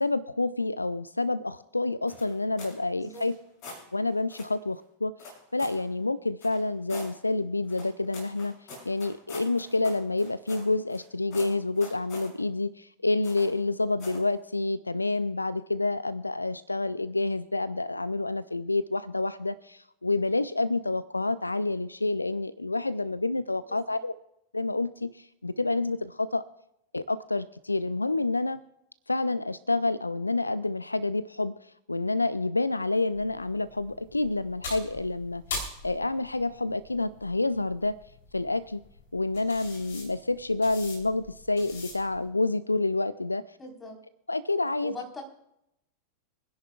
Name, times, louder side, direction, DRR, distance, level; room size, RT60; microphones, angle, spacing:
voice 1, 0.0-3.4 3.9-5.1 5.5-8.6 8.9-24.1 24.5-26.4 26.9-28.6 29.1-35.4 35.8-38.0 38.3-38.8 39.1-43.4 44.3-44.9, left 2 dB, 80° left, 17 dB, 0.4 m, -28 dB
sound 1, 2.1-2.8 3.1-3.8 4.3-4.5 5.2-5.8 6.4-7.1 7.7-11.0 11.3-12.3 13.2-13.6 14.0-14.3, left 3 dB, 40° left, 6.1 m, -45 dB
sound 2, 33.1-42.3, left 3 dB, 60° left, 3.3 m, -43 dB
voice 2, 43.6-43.9 44.8-45.2, left 2 dB, 15° left, 0 dB, 4.0 m, -41 dB
26.0 x 10.5 x 2.3 m, 0.80 s
figure-of-eight pair, 90°, 0 cm